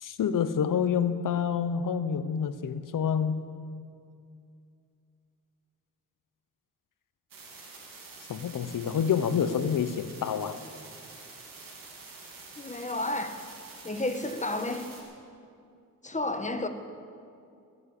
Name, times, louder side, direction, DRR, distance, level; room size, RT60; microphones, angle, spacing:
voice 1, 0.0-3.5 8.3-10.6, left 7 dB, 70° left, 12 dB, 0.9 m, -28 dB
sound 1, 7.3-15.0, right 3 dB, 85° right, 3.0 m, -47 dB
voice 2, 12.6-13.4 13.8-14.9 16.0-16.7, left 2 dB, 20° left, 8 dB, 1.4 m, -31 dB
19.5 x 7.4 x 8.3 m, 2.4 s
cardioid pair, 60°, 33 cm